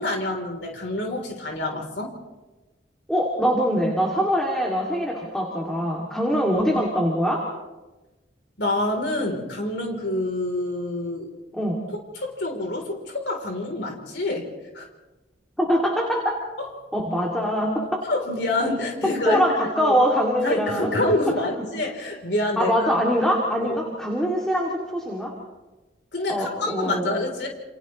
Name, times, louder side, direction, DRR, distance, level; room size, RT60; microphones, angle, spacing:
voice 1, 0.0-2.2 8.6-11.3 12.1-14.5 14.7-14.9 16.6-16.7 17.8-19.4 19.8-20.0 20.4-22.9 23.6-23.8 26.1-27.5, left 1 dB, 85° left, 2 dB, 3.5 m, -27 dB
voice 2, 3.1-7.4 11.5-11.8 15.6-16.3 16.9-17.8 19.2-20.9 22.6-25.3 26.3-27.1, equal, 5° left, -2 dB, 2.5 m, -23 dB
29.0 x 28.5 x 3.2 m, 1.1 s
head